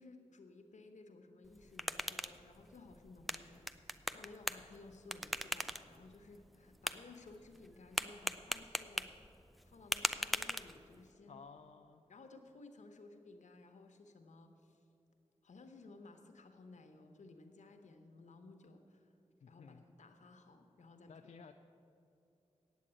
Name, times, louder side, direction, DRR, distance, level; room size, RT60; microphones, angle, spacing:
voice 1, 0.0-9.1 9.6-11.4 12.1-14.8 15.4-19.1 19.5-21.1, left 3 dB, 90° left, 5 dB, 1.0 m, -57 dB
sound 1, 1.4-11.1, equal, ahead, 0.4 m, -42 dB
voice 2, 11.3-12.0 19.4-19.8 21.1-21.5, left 5 dB, 75° left, 5 dB, 0.4 m, -55 dB
8.6 x 8.4 x 8.8 m, 2.7 s
wide cardioid pair, 100°, 12 cm